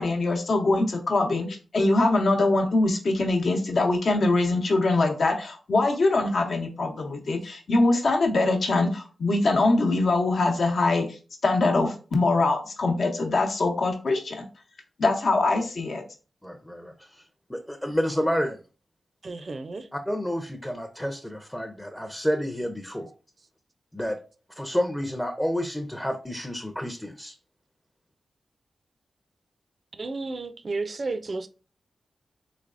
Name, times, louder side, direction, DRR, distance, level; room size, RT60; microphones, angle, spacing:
voice 1, 0.0-1.5 1.7-11.2 11.4-14.4 15.0-16.0, left 2 dB, 70° left, 0.8 m, -23 dB
voice 2, 16.4-18.6 19.9-23.1 23.9-24.2 24.6-27.4, equal, 10° left, 0.5 m, -30 dB
voice 3, 19.2-19.9 30.0-31.5, right 3 dB, 55° right, 0.4 m, -32 dB
3.2 x 3.1 x 2.5 m
cardioid pair, 55°, 0 cm